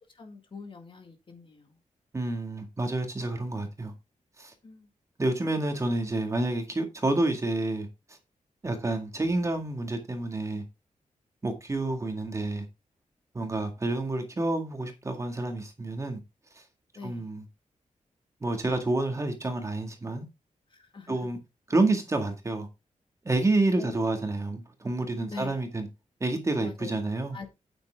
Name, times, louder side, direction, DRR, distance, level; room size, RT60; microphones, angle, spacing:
voice 1, 0.1-1.8 4.6-4.9 16.9-17.3 20.7-21.2 23.8-24.0 25.3-25.5 26.6-26.9 27.3-27.5, left 4 dB, 40° left, 2.1 m, -43 dB
voice 2, 2.1-3.9 4.4-4.5 5.2-8.2 8.6-10.6 11.4-12.7 13.3-16.2 16.5-16.6 17.0-17.4 18.4-20.3 21.1-21.4 21.7-22.7 23.2-25.9 26.2-27.4, right 2 dB, 25° right, 2.0 m, -29 dB
9.3 x 7.8 x 3.7 m
wide cardioid pair, 170°, 13 cm